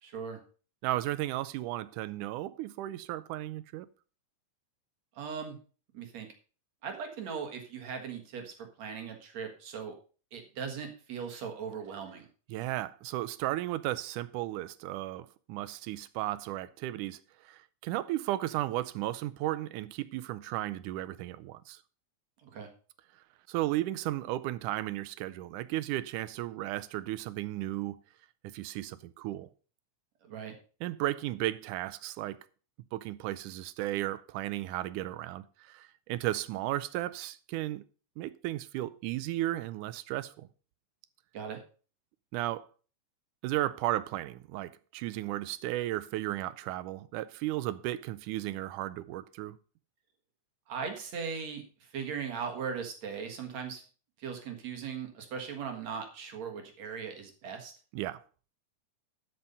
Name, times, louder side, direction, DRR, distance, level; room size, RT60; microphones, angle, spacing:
voice 1, 0.0-0.4 5.1-5.6 5.9-6.3 6.8-10.0 10.3-12.3 22.4-22.7 30.2-30.5 41.3-41.6 50.7-53.8 54.2-57.7, right 6 dB, 60° right, 2.9 m, -39 dB
voice 2, 0.8-3.9 12.5-21.8 23.5-28.0 28.4-29.5 30.8-32.4 32.9-37.8 38.2-40.5 42.3-42.7 43.4-49.6 57.9-58.2, right 15 dB, 85° right, 2.1 m, -34 dB
12.5 x 5.7 x 5.4 m
omnidirectional pair, 3.5 m